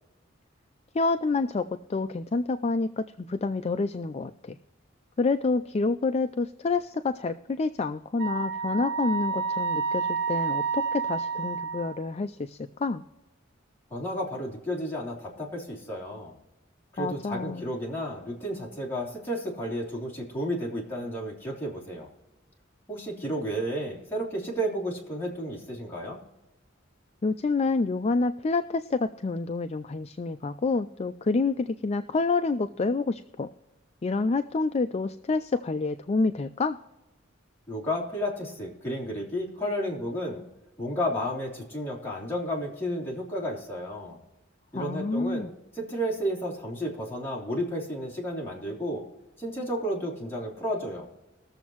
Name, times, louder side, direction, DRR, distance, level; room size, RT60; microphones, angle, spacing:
voice 1, 0.9-4.6 5.2-13.0 17.0-17.7 27.2-33.5 34.0-36.8 44.7-45.5, left 3 dB, 35° left, 9 dB, 0.4 m, -28 dB
Wind instrument woodwind instrument, 8.2-12.0, right 5 dB, 55° right, 3.7 m, -29 dB
voice 2, 13.9-16.3 16.9-22.1 22.9-26.2 37.7-40.4 40.8-44.2 44.7-45.5 45.7-49.0 49.4-51.1, equal, 10° left, -4 dB, 3.0 m, -32 dB
21.0 x 7.2 x 3.0 m, 0.99 s
head